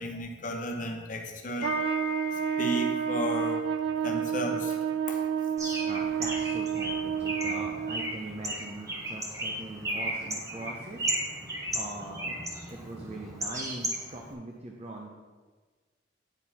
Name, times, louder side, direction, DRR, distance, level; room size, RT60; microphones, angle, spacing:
voice 1, 0.0-6.0 12.7-12.8, left 1 dB, 45° left, 3 dB, 0.9 m, -35 dB
Trumpet, 1.6-8.1, right 8 dB, 90° right, 0.4 m, -30 dB
Bird, 5.6-14.3, right 1 dB, 15° right, 0.9 m, -35 dB
voice 2, 5.9-11.1 11.7-12.4 12.7-15.1, right 2 dB, 35° right, 1 dB, 0.6 m, -41 dB
8.9 x 4.5 x 4.2 m, 1.4 s
head